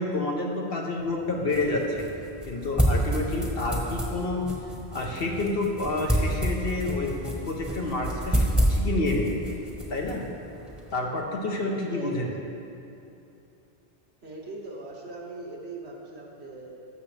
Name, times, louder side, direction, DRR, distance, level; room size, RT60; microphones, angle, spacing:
voice 1, 0.0-2.1 2.5-4.5 4.9-9.4 9.9-10.3 10.9-12.3, left 2 dB, 60° left, 0 dB, 1.2 m, -29 dB
sound 1, 1.0-10.9, equal, ahead, 1.1 m, -29 dB
voice 2, 11.9-12.3 14.2-16.8, right 2 dB, 70° right, -2 dB, 1.5 m, -39 dB
12.5 x 7.3 x 3.4 m, 2.8 s
omnidirectional pair, 1.1 m